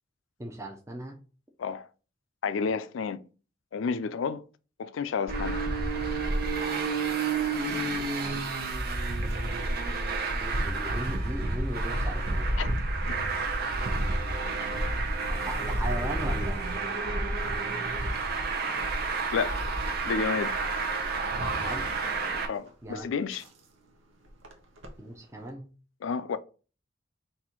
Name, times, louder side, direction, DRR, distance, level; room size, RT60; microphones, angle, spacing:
voice 1, 0.4-1.2 7.8-8.4 10.4-12.5 15.3-16.7 21.6-21.9 22.8-23.1 25.0-25.7, right 1 dB, 15° right, 0.6 m, -38 dB
voice 2, 2.4-3.2 3.7-4.4 4.8-5.6 12.6-12.7 19.3-19.6 20.0-20.5 22.5-23.4 26.0-26.4, left 5 dB, 85° left, 0.4 m, -30 dB
Traffic noise roadway noise, 5.3-22.5, right 3 dB, 55° right, 0.8 m, -30 dB
sound 1, 6.9-25.5, right 1 dB, 85° right, 0.9 m, -44 dB
4.2 x 2.6 x 4.3 m
head